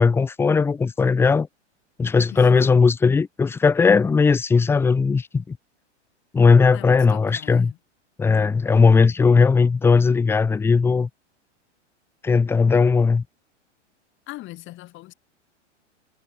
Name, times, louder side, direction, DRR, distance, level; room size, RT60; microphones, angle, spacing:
voice 1, 0.0-1.5 2.0-5.6 6.3-7.7 8.2-11.1 12.2-13.2, left 5 dB, 5° left, 0.6 m, -18 dB
voice 2, 2.3-2.9 6.7-7.8 14.3-15.1, left 17 dB, 30° left, 2.5 m, -40 dB
hypercardioid pair, 125°, 36 cm